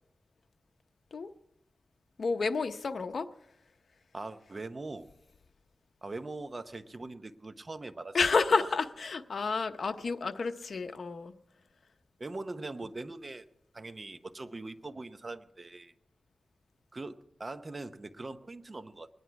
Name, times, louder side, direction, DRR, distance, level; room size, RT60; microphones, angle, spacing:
voice 1, 2.2-3.3 8.1-11.3, left 4 dB, 70° left, 8 dB, 0.7 m, -30 dB
voice 2, 4.1-5.1 6.0-8.2 8.5-8.7 12.2-13.5 13.7-15.9 16.9-19.1, right 2 dB, 40° right, 10 dB, 0.8 m, -41 dB
21.0 x 9.9 x 4.7 m, 0.81 s
wide cardioid pair, 80°, 0 cm